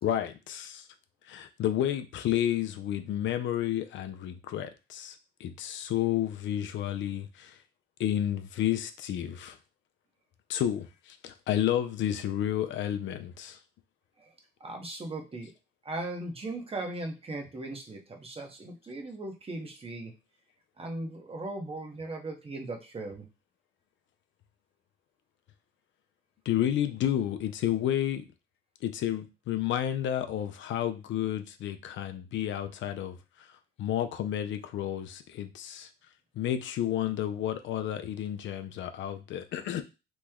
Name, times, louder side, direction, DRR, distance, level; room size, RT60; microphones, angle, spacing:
voice 1, 0.0-0.8 1.3-7.6 8.0-9.6 10.5-13.6 26.5-28.2 28.8-33.2 33.8-35.9 36.4-39.8, left 11 dB, 70° left, 8 dB, 0.4 m, -31 dB
voice 2, 14.6-15.5 15.8-20.1 20.8-23.3, right 2 dB, 30° right, 3 dB, 0.8 m, -38 dB
3.0 x 2.1 x 3.5 m, 0.28 s
cardioid pair, 90°, 20 cm